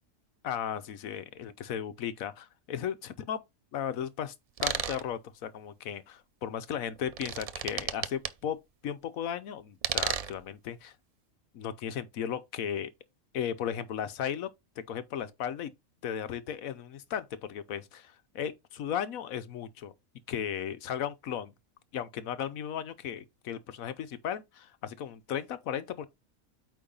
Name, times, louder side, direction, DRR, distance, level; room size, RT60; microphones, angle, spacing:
voice 1, 0.4-3.4 3.7-4.3 4.6-8.6 8.8-10.9 11.5-12.9 13.3-14.5 14.9-15.7 16.0-19.9 20.3-21.5 21.9-26.1, left 9 dB, 85° left, 1.2 m, -35 dB
sound 1, 4.6-5.0 6.9-8.3 9.8-10.4, right 7 dB, 65° right, 0.3 m, -32 dB
8.7 x 3.1 x 5.3 m
omnidirectional pair, 1.4 m